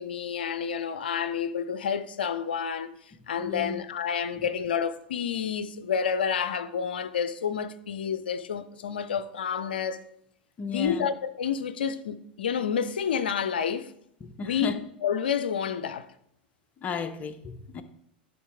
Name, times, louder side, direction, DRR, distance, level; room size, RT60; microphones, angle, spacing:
voice 1, 0.0-2.9 3.3-10.0 10.7-13.9 14.4-14.7 15.0-16.1, left 7 dB, 75° left, 0.5 m, -29 dB
voice 2, 3.4-3.8 10.6-11.1 14.2-14.8 16.8-17.8, left 6 dB, 30° left, 0.7 m, -34 dB
11.0 x 3.8 x 3.5 m
hypercardioid pair, 90°, 5 cm